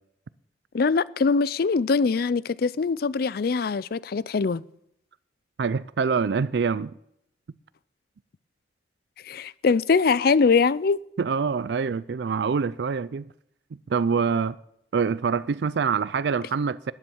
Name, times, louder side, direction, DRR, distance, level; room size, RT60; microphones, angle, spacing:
voice 1, 0.7-4.6 9.2-11.0, left 4 dB, 55° left, 0.4 m, -22 dB
voice 2, 5.6-6.9 11.2-13.3 13.9-14.6 14.9-16.9, right 5 dB, 65° right, 0.4 m, -25 dB
12.0 x 10.0 x 7.2 m
head